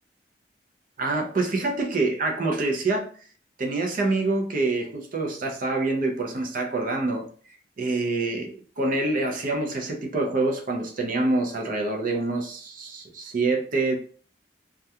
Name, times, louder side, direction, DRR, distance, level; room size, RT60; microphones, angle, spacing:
voice 1, 1.0-3.1 3.6-7.3 7.8-14.0, right 2 dB, 50° right, 0.5 m, -26 dB
2.3 x 2.2 x 2.8 m
head